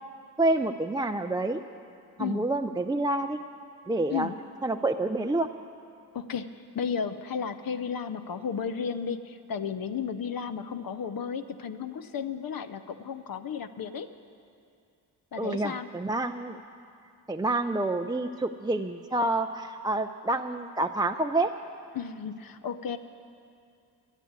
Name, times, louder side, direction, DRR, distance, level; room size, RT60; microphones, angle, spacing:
voice 1, 0.4-1.6 2.2-3.4 3.9-4.3 4.6-5.5 15.4-16.6 17.3-21.5, right 2 dB, 10° right, 5 dB, 0.4 m, -28 dB
voice 2, 6.1-6.5 6.7-14.1 15.3-15.9 21.9-23.0, left 7 dB, 55° left, 11 dB, 0.7 m, -33 dB
12.0 x 8.2 x 9.3 m, 2.4 s
supercardioid pair, 50°, 43 cm